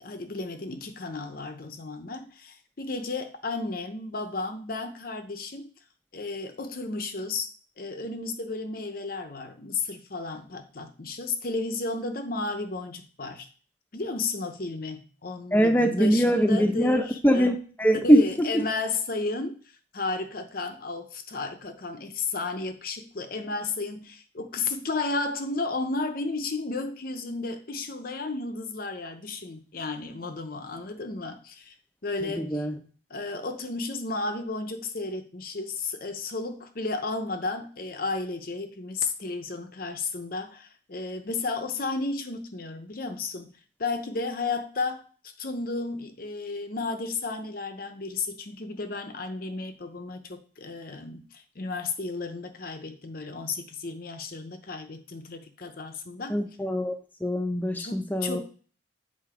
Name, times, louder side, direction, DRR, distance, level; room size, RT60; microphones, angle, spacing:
voice 1, 0.0-5.7 6.1-7.5 7.8-13.5 13.9-17.5 17.9-19.6 19.9-31.7 32.0-32.7 33.1-43.5 43.8-45.0 45.4-56.4 57.8-58.4, left 3 dB, 50° left, 8 dB, 0.8 m, -33 dB
voice 2, 15.5-18.6 32.2-32.7 56.3-56.9 57.2-58.4, equal, 10° left, 6 dB, 0.8 m, -22 dB
7.6 x 3.8 x 5.0 m, 0.40 s
head